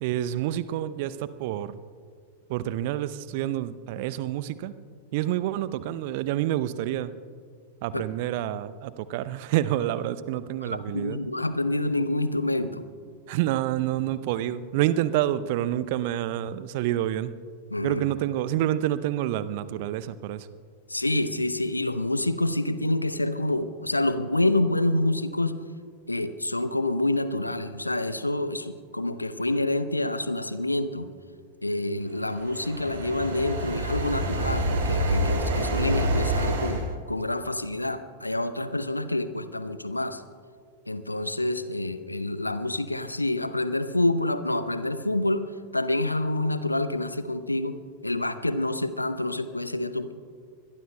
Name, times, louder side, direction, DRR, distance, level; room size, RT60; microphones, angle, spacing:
voice 1, 0.0-1.8 2.5-4.7 5.1-7.1 7.8-11.2 13.3-17.4 17.8-20.5, right 13 dB, 50° right, 15 dB, 0.6 m, -28 dB
voice 2, 10.6-12.8 17.7-18.0 20.9-25.6 26.1-31.1 31.6-36.8 37.1-40.2 40.9-45.4 45.7-47.8 48.0-50.1, left 2 dB, 85° left, 12 dB, 0.7 m, -27 dB
sound 1, 32.2-36.9, right 1 dB, 65° right, 3.2 m, -27 dB
24.0 x 21.5 x 2.2 m, 2.1 s
figure-of-eight pair, 90°, 0 cm